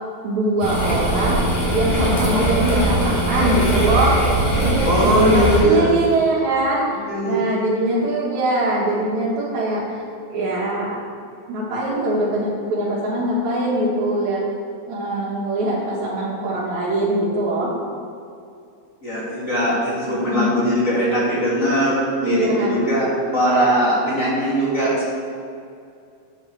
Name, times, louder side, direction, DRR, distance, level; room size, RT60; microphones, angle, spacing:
voice 1, 0.2-1.4 1.7-6.8 7.3-9.8 10.3-11.0 11.5-14.4 14.9-17.7 20.0-20.5 22.2-22.8, right 1 dB, 75° right, -7 dB, 2.6 m, -22 dB
sound 1, 0.6-5.6, right 1 dB, 70° left, 3.5 m, -20 dB
voice 2, 4.8-5.9 7.0-7.4 19.0-23.1 23.3-25.1, equal, 30° left, -7 dB, 1.8 m, -20 dB
7.9 x 7.2 x 4.4 m, 2.4 s
omnidirectional pair, 3.4 m